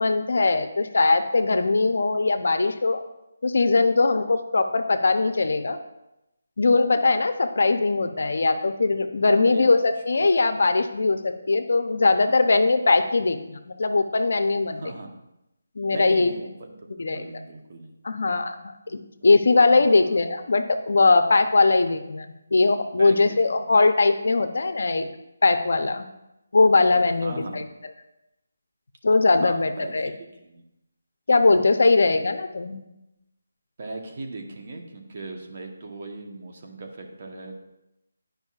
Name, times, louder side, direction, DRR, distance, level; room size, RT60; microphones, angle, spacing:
voice 1, 0.0-3.0 3.4-5.8 6.6-14.8 15.8-16.3 17.0-17.3 18.0-18.5 18.9-25.1 25.4-26.0 26.5-27.6 29.0-30.1 31.3-32.8, left 3 dB, 65° left, 8 dB, 0.6 m, -20 dB
voice 2, 9.3-9.7 10.2-10.3 10.5-10.7 14.7-15.1 15.9-16.7 17.1-17.9 18.8-19.3 19.7-20.2 23.0-23.7 27.2-27.7 29.4-30.6 33.8-37.5, right 2 dB, 45° right, 3 dB, 1.0 m, -39 dB
10.5 x 5.2 x 2.4 m, 0.90 s
figure-of-eight pair, 170°, 0 cm